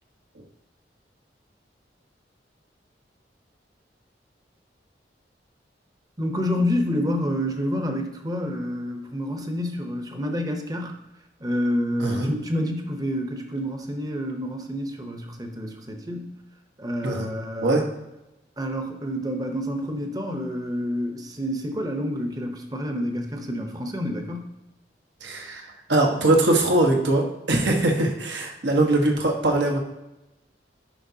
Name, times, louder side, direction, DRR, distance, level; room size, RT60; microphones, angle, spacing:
voice 1, 6.2-10.9 11.4-16.3 16.8-17.8 18.6-24.5, equal, 20° right, 4 dB, 0.7 m, -28 dB
voice 2, 25.2-29.8, right 2 dB, 85° right, 2 dB, 1.2 m, -22 dB
9.9 x 5.8 x 2.8 m, 0.97 s
head